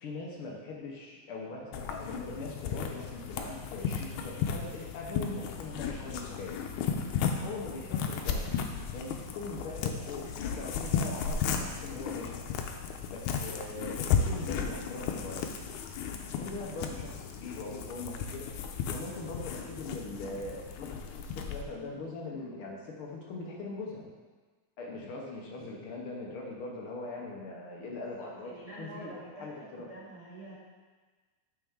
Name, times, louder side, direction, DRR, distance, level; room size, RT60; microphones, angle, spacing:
voice 1, 0.0-6.6 7.2-8.5 8.9-12.4 13.1-15.5 16.4-18.5 18.9-24.1 24.8-28.5 28.8-29.9, left 3 dB, 65° left, -2 dB, 1.4 m, -41 dB
sound 1, 1.7-21.6, left 6 dB, 85° left, 2.1 m, -34 dB
voice 2, 28.0-30.5, right 1 dB, 15° right, -10 dB, 1.8 m, -47 dB
8.7 x 5.7 x 3.6 m, 1.4 s
omnidirectional pair, 3.4 m